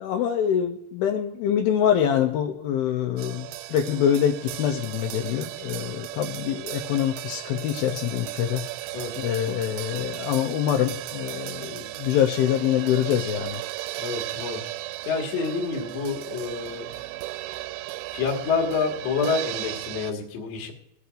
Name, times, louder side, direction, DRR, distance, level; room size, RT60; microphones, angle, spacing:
voice 1, 0.0-8.6 9.2-13.6, left 9 dB, 85° left, 3 dB, 2.1 m, -25 dB
sound 1, 3.2-20.1, right 17 dB, 90° right, 2.9 m, -36 dB
voice 2, 13.9-14.6 15.1-16.9 18.1-20.7, left 5 dB, 55° left, 1 dB, 2.0 m, -28 dB
21.0 x 8.3 x 2.5 m, 0.84 s
omnidirectional pair, 5.1 m